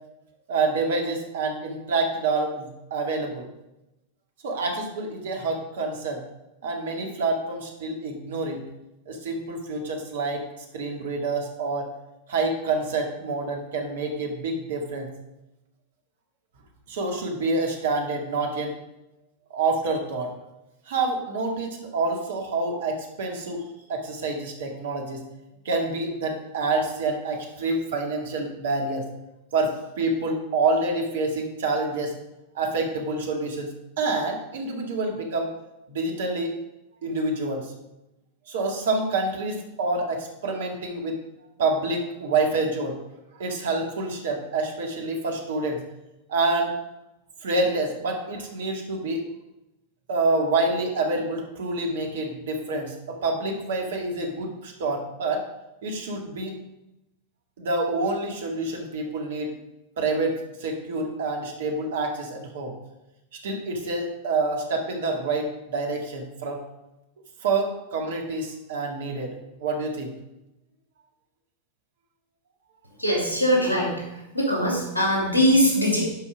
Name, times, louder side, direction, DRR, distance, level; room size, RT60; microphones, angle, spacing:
voice 1, 0.5-3.5 4.4-6.2 6.6-8.6 9.1-10.4 10.7-11.9 12.3-15.1 16.9-18.7 19.5-20.3 20.9-25.2 25.7-29.1 29.5-32.1 32.5-35.5 35.9-36.6 37.0-37.7 38.5-41.1 41.6-43.0 43.4-45.8 46.3-46.7 47.4-49.3 50.1-55.4 55.8-56.5 57.6-59.5 60.0-62.7 63.4-66.6 67.4-70.1, right 3 dB, 60° right, 2 dB, 2.0 m, -27 dB
voice 2, 73.0-73.9 74.3-76.0, equal, 80° left, -2 dB, 2.9 m, -21 dB
11.5 x 5.5 x 5.1 m, 0.92 s
figure-of-eight pair, 90°, 0 cm